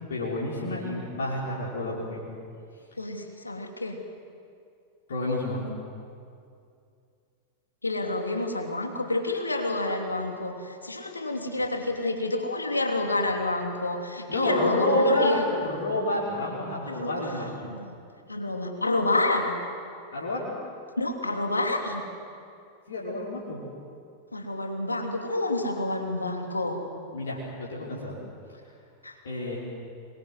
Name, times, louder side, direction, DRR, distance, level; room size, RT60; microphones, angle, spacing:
voice 1, 0.1-2.3 5.1-5.6 14.3-17.5 20.1-20.5 22.9-23.6 27.1-28.2 29.2-29.6, left 1 dB, 65° left, -6 dB, 5.4 m, -29 dB
voice 2, 3.0-4.0 7.8-15.4 16.9-17.3 17.6-17.9 18.3-19.6 21.0-22.0 24.3-26.8 29.0-29.2, left 2 dB, 80° left, 3 dB, 3.0 m, -28 dB
27.5 x 23.0 x 8.0 m, 2.4 s
figure-of-eight pair, 90°, 0 cm